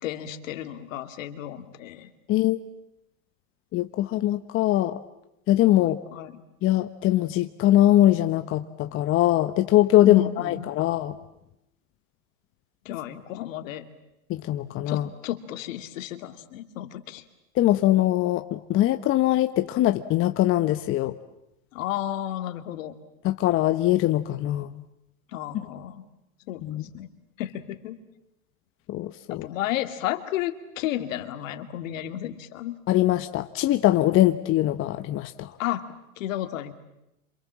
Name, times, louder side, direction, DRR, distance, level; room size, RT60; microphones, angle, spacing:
voice 1, 0.0-2.1 5.8-6.4 10.0-10.7 12.8-13.9 14.9-17.2 21.7-22.9 25.3-26.0 26.5-26.6 26.9-27.1 27.4-28.0 29.3-32.8 35.6-35.9 36.2-36.7, left 12 dB, 60° left, 8 dB, 2.5 m, -32 dB
voice 2, 2.3-2.6 3.7-5.0 5.5-6.0 6.6-11.1 14.3-15.1 17.6-21.1 23.2-24.7 26.6-26.8 28.9-29.5 32.9-35.5, left 14 dB, 30° left, 8 dB, 1.0 m, -22 dB
28.5 x 27.0 x 7.5 m, 0.86 s
hypercardioid pair, 120°, 43 cm